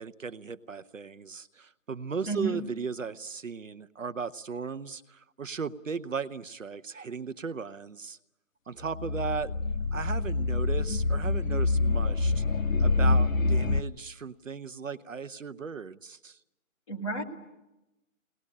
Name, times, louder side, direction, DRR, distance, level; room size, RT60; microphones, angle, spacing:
voice 1, 0.0-8.2 8.7-9.5 9.9-12.4 12.8-16.4, right 5 dB, 65° right, 13 dB, 0.8 m, -36 dB
voice 2, 2.3-2.6 16.9-17.2, right 3 dB, 20° left, -4 dB, 2.6 m, -31 dB
sound 1, 8.8-13.8, left 3 dB, 70° left, 0.9 m, -26 dB
22.5 x 19.0 x 9.8 m, 0.97 s
figure-of-eight pair, 170°, 41 cm